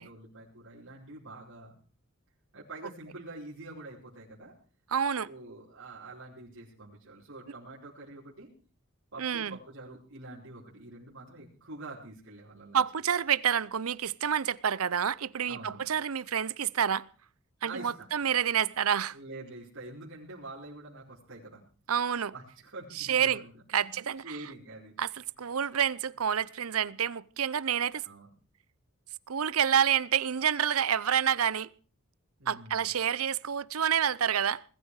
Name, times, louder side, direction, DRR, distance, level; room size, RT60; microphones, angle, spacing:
voice 1, 0.0-1.7 2.5-4.5 5.2-8.5 9.1-12.8 15.5-15.8 17.6-18.1 19.1-21.6 22.3-23.5 23.8-25.0 28.0-28.3 32.4-32.9, right 2 dB, 65° right, 5.0 m, -46 dB
voice 2, 4.9-5.3 9.2-9.6 12.7-17.1 17.6-19.2 21.9-22.3 22.9-23.4 23.7-24.4 25.0-28.0 29.3-31.7 32.5-34.6, right 8 dB, 80° right, 0.7 m, -28 dB
21.0 x 13.5 x 4.8 m
head